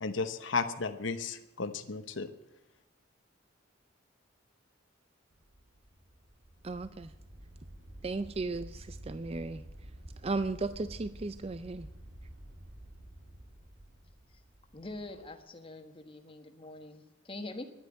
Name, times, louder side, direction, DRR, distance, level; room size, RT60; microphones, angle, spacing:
voice 1, 0.0-2.3, left 4 dB, 85° left, 9 dB, 1.0 m, -34 dB
sound 1, 5.3-15.3, right 1 dB, 80° right, 2.9 m, -50 dB
voice 2, 6.6-7.1 8.0-9.6 10.2-11.9, right 3 dB, 30° right, 12 dB, 0.4 m, -35 dB
voice 3, 14.7-17.7, left 2 dB, 30° left, 6 dB, 1.5 m, -44 dB
11.0 x 10.0 x 9.3 m, 0.94 s
head